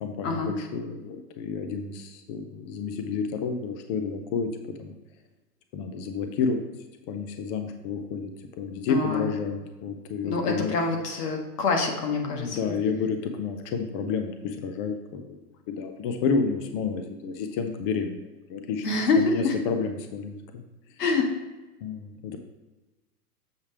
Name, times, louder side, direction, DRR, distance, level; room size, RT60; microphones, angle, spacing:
voice 1, 0.0-4.5 4.8-4.9 5.7-6.6 7.1-8.3 8.6-10.7 12.2-15.4 15.7-18.2 18.5-18.8 19.2-20.6 21.8-22.4, left 5 dB, 25° left, 6 dB, 0.3 m, -30 dB
voice 2, 8.9-9.3 10.2-12.7 18.8-19.6 21.0-21.3, left 3 dB, 80° left, 1 dB, 1.7 m, -26 dB
7.3 x 3.2 x 5.9 m, 1.1 s
hypercardioid pair, 125°, 46 cm